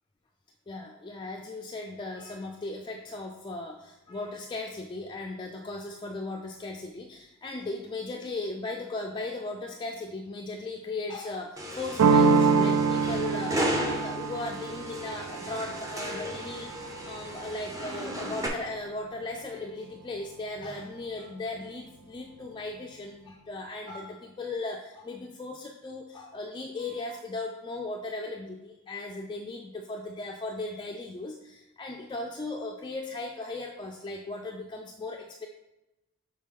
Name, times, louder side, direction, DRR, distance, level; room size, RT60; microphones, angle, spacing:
voice 1, 0.7-35.5, left 2 dB, 20° left, 1 dB, 0.3 m, -37 dB
sound 1, 11.6-18.5, equal, 15° right, 0.7 m, -35 dB
sound 2, 12.0-17.5, right 5 dB, 75° right, 0.4 m, -26 dB
6.3 x 4.2 x 3.7 m, 0.97 s
head